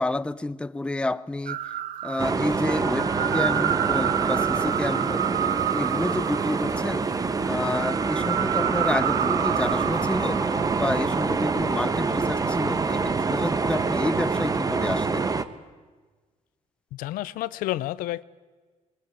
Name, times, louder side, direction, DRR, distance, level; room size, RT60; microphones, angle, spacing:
voice 1, 0.0-1.6 2.0-5.5 5.7-7.1 7.4-15.3, left 2 dB, 5° left, 0.6 m, -29 dB
sound 1, 1.5-12.1 12.5-13.1, right 11 dB, 75° right, 0.9 m, -29 dB
sound 2, 2.2-15.4, right 4 dB, 25° right, 1.1 m, -26 dB
voice 2, 16.9-18.2, left 16 dB, 85° left, 0.6 m, -30 dB
20.5 x 20.0 x 8.3 m
cardioid pair, 100°, 14 cm